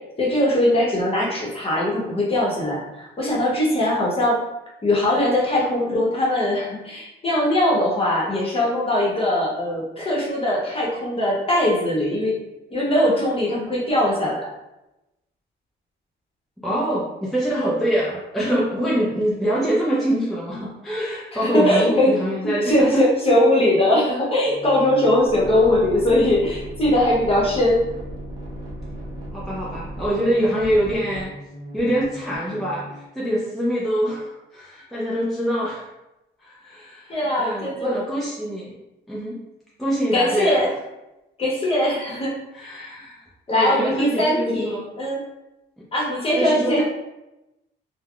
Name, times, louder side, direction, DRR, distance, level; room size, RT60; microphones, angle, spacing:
voice 1, 0.2-4.4 4.8-12.4 12.7-14.5 21.4-22.2 22.6-27.8 37.1-38.0 40.1-40.7 41.4-42.3 43.5-45.2 45.9-46.8, left 1 dB, 30° left, -4 dB, 1.0 m, -20 dB
voice 2, 16.6-23.0 25.5-25.8 29.3-31.3 31.7-35.9 36.4-38.7 39.1-39.4 39.8-40.6 42.1-42.2 42.5-43.2 43.5-44.8 46.4-46.8, equal, ahead, -7 dB, 0.6 m, -24 dB
sound 1, 24.4-33.0, equal, 20° right, 0.9 m, -36 dB
3.3 x 2.1 x 2.3 m, 0.95 s
cardioid pair, 90°, 20 cm